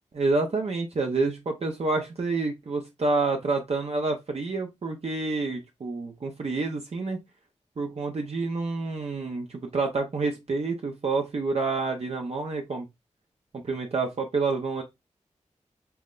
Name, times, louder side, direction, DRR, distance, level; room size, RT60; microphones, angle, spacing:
voice 1, 0.1-7.2 7.8-12.9 13.7-14.8, right 3 dB, 55° right, 0.7 m, -28 dB
5.6 x 2.1 x 2.4 m
cardioid pair, 45°, 13 cm